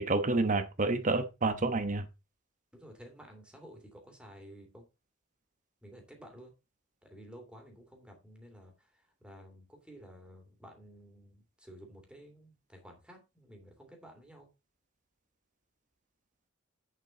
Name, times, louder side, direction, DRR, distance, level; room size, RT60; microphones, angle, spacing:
voice 1, 0.0-2.1, right 3 dB, 35° right, 1.0 m, -29 dB
voice 2, 2.7-4.8 5.8-6.5 7.1-8.7 9.2-14.5, equal, 5° right, 2.6 m, -52 dB
8.3 x 7.5 x 3.9 m
head